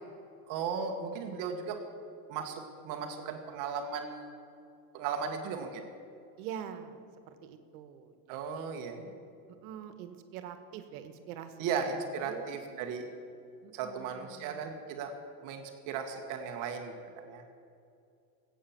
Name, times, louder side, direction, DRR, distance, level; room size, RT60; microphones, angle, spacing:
voice 1, 0.5-1.8 2.3-4.4 4.9-5.8 8.3-9.2 11.6-13.1 13.7-15.1 15.4-17.4, right 6 dB, 45° right, 4 dB, 1.5 m, -36 dB
voice 2, 6.4-7.0 7.4-8.7 9.5-11.5 11.8-11.9 12.2-12.5 13.6-14.6, right 9 dB, 75° right, 9 dB, 1.7 m, -45 dB
20.0 x 8.7 x 7.2 m, 2.5 s
cardioid pair, 170°, 44 cm